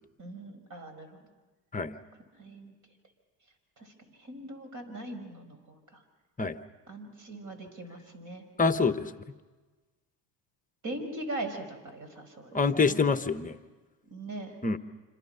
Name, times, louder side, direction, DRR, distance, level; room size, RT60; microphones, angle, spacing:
voice 1, 0.2-1.2 2.4-2.7 3.8-3.9 4.2-6.0 6.9-8.4 10.8-13.0 14.1-14.6, right 1 dB, 40° right, 8 dB, 5.4 m, -40 dB
voice 2, 8.6-9.1 12.5-13.6 14.6-14.8, left 4 dB, 15° left, 10 dB, 1.0 m, -26 dB
27.0 x 27.0 x 5.6 m, 1.3 s
cardioid pair, 110°, 46 cm